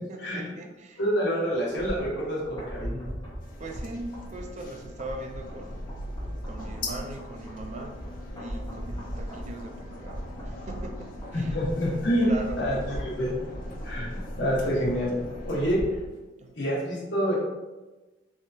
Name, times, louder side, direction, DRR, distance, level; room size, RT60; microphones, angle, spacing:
voice 1, 0.1-1.0 3.6-5.8 6.4-8.0 8.3-11.5 12.1-13.1 16.4-16.5, right 2 dB, 40° right, 4 dB, 0.4 m, -40 dB
voice 2, 1.0-3.0 11.3-12.3 12.6-13.4 13.8-15.1 15.5-15.8 16.6-17.4, equal, 65° left, -5 dB, 1.2 m, -27 dB
sound 1, 1.5-16.2 16.5-16.6, equal, 20° left, 1.1 m, -39 dB
sound 2, 3.4-15.8, left 1 dB, 50° left, 0.5 m, -41 dB
3.5 x 3.2 x 2.7 m, 1.1 s
head